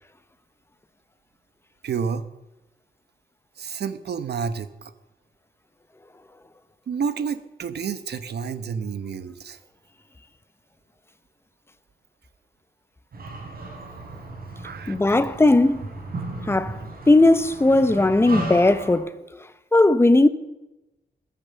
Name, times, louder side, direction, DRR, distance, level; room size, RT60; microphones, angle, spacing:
voice 1, 1.8-2.2 3.6-4.7 6.9-9.6 14.6-15.0, right 6 dB, 80° right, 1.0 m, -29 dB
sound 1, 13.1-19.0, right 2 dB, 65° right, 4.6 m, -35 dB
voice 2, 14.9-15.9 16.5-16.8 17.1-19.1 19.7-20.3, left 2 dB, 15° left, 0.8 m, -17 dB
20.0 x 8.9 x 7.0 m
wide cardioid pair, 140°, 17 cm